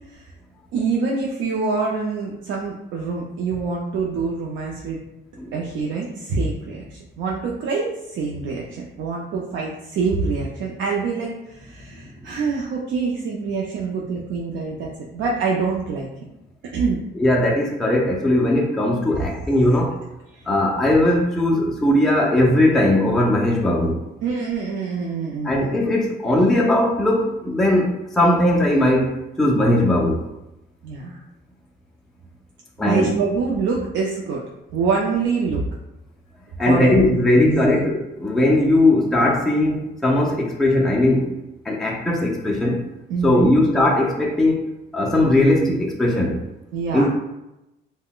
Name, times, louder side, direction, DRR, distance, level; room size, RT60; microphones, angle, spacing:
voice 1, 0.7-5.0 5.5-16.1 16.7-17.0 19.2-19.3 20.3-20.4 24.2-25.8 30.8-31.2 32.8-34.4 34.7-35.6 36.6-36.9 37.4-37.9 43.1-43.6 46.7-47.1, right 4 dB, 80° right, -2 dB, 0.4 m, -25 dB
voice 2, 17.1-19.9 20.5-24.0 25.4-30.2 32.8-33.1 36.6-41.4 41.7-42.8 43.2-44.6 44.9-46.4 46.9-47.1, left 1 dB, ahead, -2 dB, 0.4 m, -19 dB
3.6 x 2.1 x 2.3 m, 0.92 s
cardioid pair, 130°, 19 cm